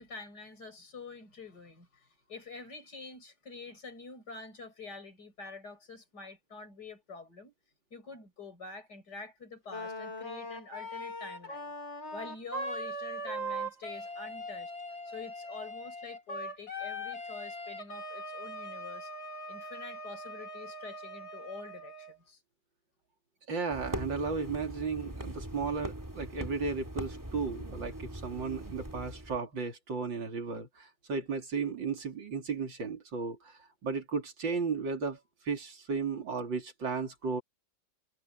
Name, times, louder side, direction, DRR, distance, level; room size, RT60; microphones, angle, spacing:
voice 1, 0.0-7.5 7.9-11.7 12.1-14.7 15.1-19.1 19.5-22.4 27.4-27.6, left 4 dB, 60° left, 6.9 m, -47 dB
Wind instrument woodwind instrument, 9.7-22.2, equal, 85° left, 5.9 m, -40 dB
voice 2, 23.5-35.2 35.5-37.4, right 4 dB, 90° right, 3.8 m, -34 dB
sound 1, 23.7-29.4, right 1 dB, 10° right, 3.2 m, -41 dB
omnidirectional pair, 2.0 m